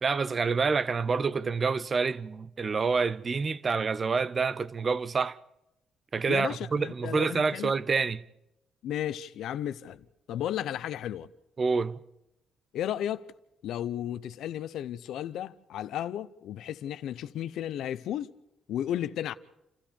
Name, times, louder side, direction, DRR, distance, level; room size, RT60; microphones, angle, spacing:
voice 1, 0.0-5.4 6.1-8.2 11.6-12.0, right 4 dB, 40° right, 0.8 m, -27 dB
voice 2, 6.3-7.7 8.8-11.3 12.7-13.3 13.6-18.3 18.7-19.3, left 11 dB, 80° left, 0.8 m, -34 dB
29.0 x 13.5 x 6.9 m
cardioid pair, 90°, 0 cm